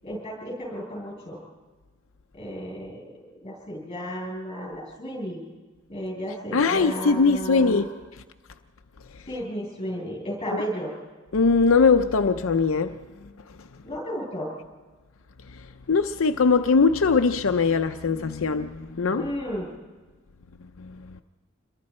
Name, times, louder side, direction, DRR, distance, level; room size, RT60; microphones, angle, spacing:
voice 1, 0.0-1.4 2.3-5.4 5.9-7.9 9.3-10.9 13.8-14.5 19.1-19.7, equal, 30° left, 8.0 m, -33 dB
voice 2, 6.5-7.9 11.3-13.0 15.9-19.3 20.8-21.2, left 4 dB, 80° left, 0.6 m, -21 dB
27.5 x 22.5 x 4.4 m
head